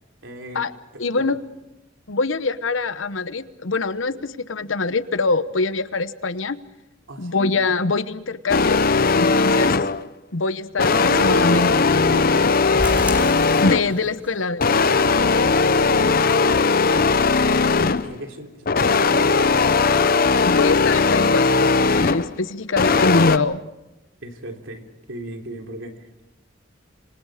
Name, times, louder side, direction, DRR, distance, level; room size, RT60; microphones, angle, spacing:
voice 1, 0.2-0.7 0.9-1.0 7.1-7.6 10.8-14.0 15.3-16.6 16.9-17.4 18.0-19.8 22.7-22.9 23.4-23.5 24.2-26.2, right 1 dB, 80° right, 3 dB, 3.6 m, -35 dB
voice 2, 1.0-1.4 2.1-6.6 7.2-8.8 9.2-9.8 10.3-11.7 13.6-15.1 20.4-23.6, left 3 dB, 90° left, 13 dB, 1.1 m, -24 dB
sound 1, 8.5-10.1 10.8-14.0 14.6-18.1 18.7-22.3 22.7-23.4, left 4 dB, 50° left, 0.7 m, -18 dB
sound 2, 12.8-14.3 14.6-14.7 15.2-15.3 15.7-15.8, equal, 5° right, 3.9 m, -30 dB
27.0 x 26.0 x 5.1 m, 0.93 s
head